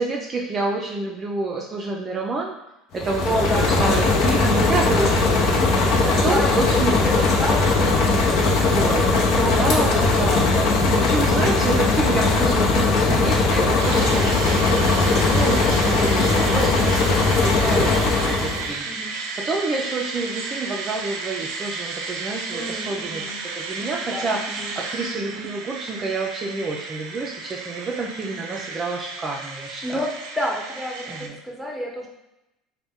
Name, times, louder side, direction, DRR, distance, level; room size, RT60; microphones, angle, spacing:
voice 1, 0.0-2.5 2.9-5.6 6.2-7.3 8.4-9.1 9.4-10.5 11.0-23.3 23.5-24.4 24.8-30.0 31.1-31.4, right 3 dB, 30° right, -1 dB, 0.4 m, -28 dB
sound 1, 2.9-18.7, left 3 dB, 55° left, 0.7 m, -19 dB
voice 2, 3.2-8.4 9.1-10.1 10.4-10.7 17.5-18.5 18.8-19.1 22.5-23.4 24.0-24.7 29.8-30.1 30.3-32.1, equal, ahead, -2 dB, 0.9 m, -31 dB
sound 2, 13.8-31.3, right 4 dB, 80° right, 0.5 m, -33 dB
4.0 x 2.2 x 3.5 m, 0.91 s
supercardioid pair, 115°, 0 cm